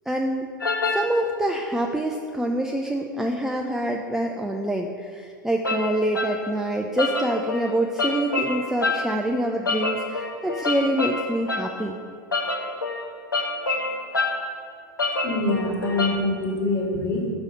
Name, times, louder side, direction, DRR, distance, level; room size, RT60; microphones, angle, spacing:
voice 1, 0.1-0.5 0.9-12.0, right 1 dB, 5° right, 1 dB, 0.5 m, -26 dB
sound 1, 0.6-1.1 5.6-6.4 7.0-9.2 9.6-11.8 12.3-14.5 15.0-16.2, left 3 dB, 90° left, 0.6 m, -27 dB
voice 2, 15.2-17.3, left 2 dB, 25° left, -1 dB, 2.0 m, -25 dB
6.2 x 4.8 x 6.8 m, 2.4 s
figure-of-eight pair, 85°, 11 cm